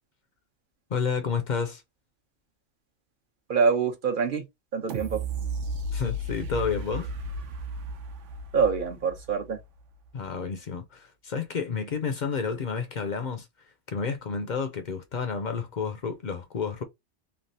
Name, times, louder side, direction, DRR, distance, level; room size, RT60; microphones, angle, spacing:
voice 1, 0.9-1.8 5.9-7.1 10.1-13.5 13.9-16.8, left 5 dB, 50° left, 0.6 m, -30 dB
voice 2, 3.5-4.5 4.7-5.2 8.5-9.6, right 6 dB, 50° right, 0.9 m, -25 dB
sound 1, 4.9-9.8 10.2-10.3, right 1 dB, 85° right, 1.0 m, -34 dB
3.3 x 2.4 x 2.6 m
omnidirectional pair, 1.2 m